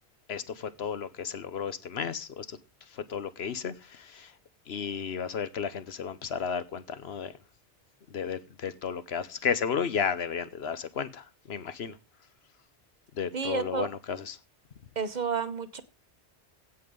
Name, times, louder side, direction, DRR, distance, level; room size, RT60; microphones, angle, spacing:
voice 1, 0.3-2.5 3.1-3.7 4.1-4.3 4.7-7.3 8.1-11.9 13.2-14.4, left 7 dB, 65° left, 1.1 m, -33 dB
voice 2, 13.3-13.9 15.0-15.8, right 5 dB, 45° right, 1.0 m, -31 dB
16.5 x 5.5 x 5.4 m
omnidirectional pair, 1.1 m